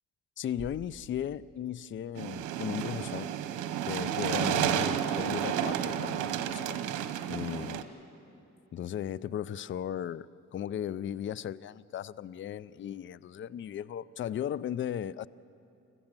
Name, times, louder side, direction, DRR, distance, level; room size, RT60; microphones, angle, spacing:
voice 1, 0.4-3.3 3.9-6.8 7.3-7.9 8.7-15.3, left 10 dB, 40° left, 0.4 m, -36 dB
sound 1, 0.6-2.4, right 5 dB, 25° right, 1.8 m, -51 dB
sound 2, 2.2-7.8, right 10 dB, 90° right, 1.1 m, -31 dB
25.5 x 15.0 x 7.5 m
cardioid pair, 90°, 30 cm